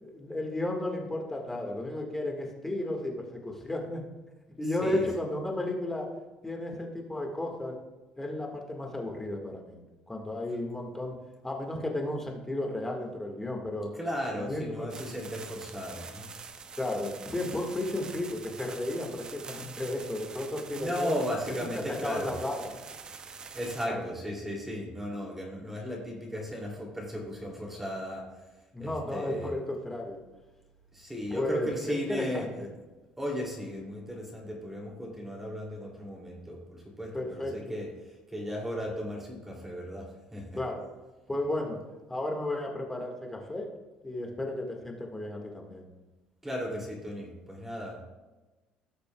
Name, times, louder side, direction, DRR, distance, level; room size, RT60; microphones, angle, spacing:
voice 1, 0.0-4.0 4.6-6.1 6.4-7.8 8.2-9.8 10.1-11.2 11.4-13.9 14.4-14.9 16.8-21.2 22.0-22.7 23.8-24.0 28.7-30.2 31.3-32.5 37.1-37.5 40.6-40.9 41.3-41.8 42.1-43.7 44.0-45.9, left 1 dB, 10° left, 1 dB, 1.7 m, -33 dB
voice 2, 13.9-16.3 20.7-22.3 23.5-28.3 28.8-29.5 30.9-32.6 33.2-40.6 46.4-48.0, equal, 10° right, -2 dB, 2.7 m, -36 dB
sound 1, 14.9-23.9, right 5 dB, 30° right, 0.6 m, -45 dB
17.0 x 6.7 x 2.3 m, 1.2 s
cardioid pair, 125°, 3 cm